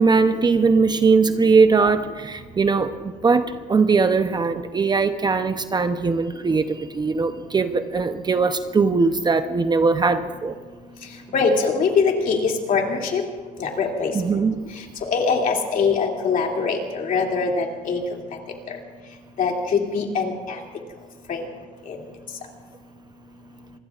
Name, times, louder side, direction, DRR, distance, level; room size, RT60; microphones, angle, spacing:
voice 1, 0.0-10.6 14.1-14.6, right 4 dB, 25° right, 10 dB, 0.7 m, -20 dB
voice 2, 11.3-13.2 13.6-14.1 15.1-18.0 18.7-18.8 19.4-20.6 21.3-21.4 21.9-22.0, left 5 dB, 55° left, 1 dB, 2.7 m, -22 dB
26.0 x 20.5 x 2.5 m, 1.4 s
cardioid pair, 110°, 17 cm